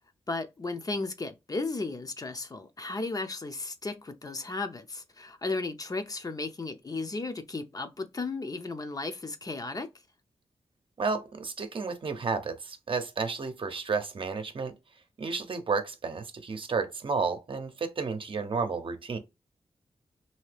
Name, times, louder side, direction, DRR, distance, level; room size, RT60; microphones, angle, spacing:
voice 1, 0.3-9.9, left 3 dB, 35° left, 0.6 m, -35 dB
voice 2, 11.0-14.7 15.2-19.2, right 4 dB, 55° right, 0.7 m, -32 dB
2.8 x 2.8 x 3.3 m
cardioid pair, 55°, 11 cm